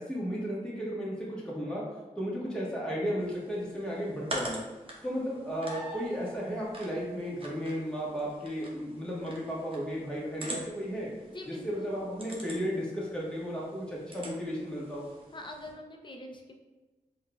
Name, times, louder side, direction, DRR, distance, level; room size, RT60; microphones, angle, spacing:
voice 1, 0.0-1.8 2.2-4.6 5.0-11.1 11.5-15.1, equal, 5° left, -6 dB, 1.0 m, -34 dB
sound 1, 3.2-15.7, right 1 dB, 40° right, 0.7 m, -45 dB
sound 2, 5.6-6.5 10.1-10.2, equal, 70° right, 0.8 m, -43 dB
voice 2, 11.3-11.9 15.3-16.5, left 1 dB, 35° left, 3 dB, 0.5 m, -44 dB
4.3 x 2.4 x 2.2 m, 1.2 s
cardioid pair, 55°, 14 cm